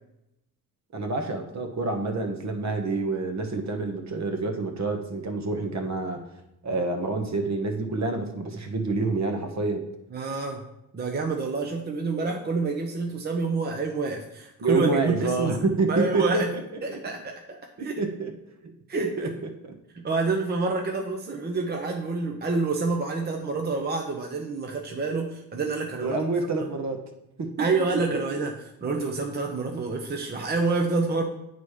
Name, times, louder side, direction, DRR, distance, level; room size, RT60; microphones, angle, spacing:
voice 1, 0.9-6.2 6.6-9.8 14.6-16.6 16.9-17.2 17.8-18.3 18.6-19.5 26.0-27.0 27.4-27.7 28.3-28.4, right 3 dB, 50° right, 4 dB, 1.2 m, -28 dB
voice 2, 10.1-10.7 10.9-15.5 15.9-16.5 16.8-18.0 18.9-19.3 19.9-26.2 26.6-26.7 27.6-28.5 28.8-31.2, right 3 dB, 30° right, 2 dB, 0.7 m, -28 dB
8.7 x 4.1 x 4.9 m, 0.86 s
cardioid pair, 120°, 35 cm